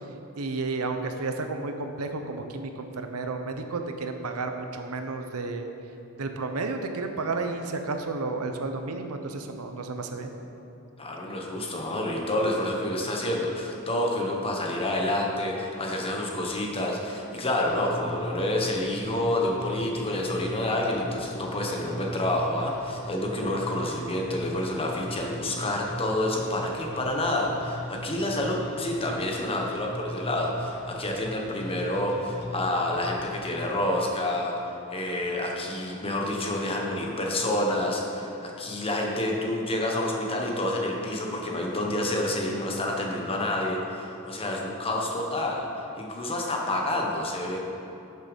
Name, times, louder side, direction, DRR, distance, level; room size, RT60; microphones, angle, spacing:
voice 1, 0.4-5.7 6.2-10.3, right 3 dB, 85° right, 6 dB, 0.8 m, -32 dB
voice 2, 11.0-34.5 34.9-45.7 45.9-47.6, left 1 dB, 25° left, -1 dB, 1.3 m, -28 dB
sound 1, 17.7-33.7, equal, 50° left, 1.0 m, -40 dB
11.5 x 6.6 x 5.2 m, 2.9 s
head